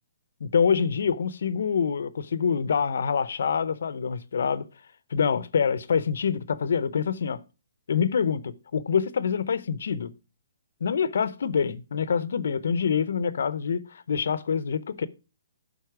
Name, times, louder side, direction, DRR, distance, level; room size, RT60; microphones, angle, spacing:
voice 1, 0.4-4.7 5.1-7.4 7.9-10.1 10.8-15.1, left 6 dB, 70° left, 0.7 m, -26 dB
11.5 x 4.2 x 4.6 m
hypercardioid pair, 145°, 0 cm